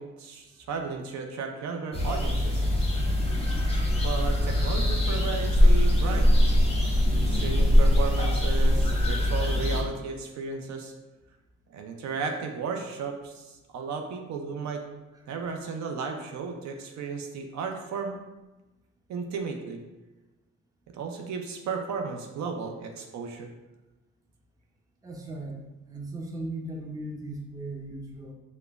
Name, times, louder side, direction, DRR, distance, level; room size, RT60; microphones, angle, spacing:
voice 1, 0.0-2.7 3.9-6.3 7.2-10.9 11.7-14.8 15.3-18.2 19.1-19.8 20.9-23.5, right 5 dB, 65° right, 3 dB, 0.5 m, -34 dB
sound 1, 1.9-9.8, left 1 dB, 20° left, 0.8 m, -22 dB
voice 2, 25.0-25.6 25.9-28.3, right 2 dB, 10° right, 0 dB, 0.6 m, -37 dB
4.8 x 2.1 x 2.3 m, 1.1 s
cardioid pair, 90°, 30 cm